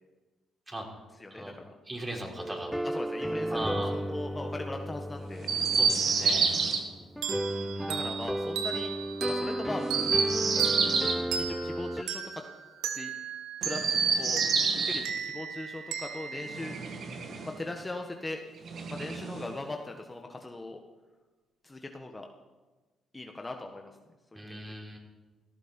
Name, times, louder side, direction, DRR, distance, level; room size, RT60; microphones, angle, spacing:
voice 1, 1.2-1.6 2.8-3.6 3.9-5.5 7.8-8.9 9.2-9.9 11.3-12.4 12.9-13.1 13.6-13.8 14.1-14.4 14.8-16.8 17.4-18.4 18.9-20.8 21.6-22.3 23.1-23.9 24.5-24.6, left 2 dB, 20° left, 3 dB, 1.6 m, -39 dB
voice 2, 1.8-2.7 3.5-3.9 5.7-6.6 7.5-7.9 24.3-25.0, right 1 dB, 25° right, -1 dB, 5.1 m, -38 dB
sound 1, 2.4-12.0, right 1 dB, ahead, 0.6 m, -34 dB
Chirp tweet, 5.4-6.8 9.8-11.2 13.6-15.0 16.5-17.5 18.6-19.5, right 5 dB, 65° right, 2.0 m, -28 dB
sound 2, 7.2-17.5, right 7 dB, 80° right, 1.4 m, -37 dB
17.0 x 14.5 x 4.5 m, 1.2 s
supercardioid pair, 55°, 0 cm